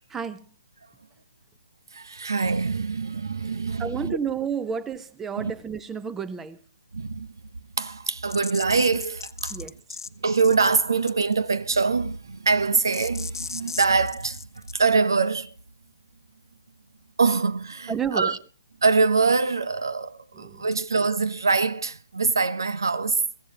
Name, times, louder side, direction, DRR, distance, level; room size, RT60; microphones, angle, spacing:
voice 1, 0.1-0.4 3.8-6.6 9.5-9.7 17.9-18.4 20.4-20.7, right 6 dB, 10° right, 0.8 m, -31 dB
voice 2, 1.9-4.2 5.4-5.5 6.9-7.3 7.8-9.6 10.2-14.4 14.7-15.5 17.2-18.4 18.8-23.2, right 4 dB, 80° right, 0.9 m, -24 dB
sound 1, 8.3-10.1 10.4-10.7 11.1-11.5 12.9-14.7, left 5 dB, 80° left, 0.9 m, -37 dB
22.5 x 15.5 x 2.9 m
hypercardioid pair, 140°, 2 cm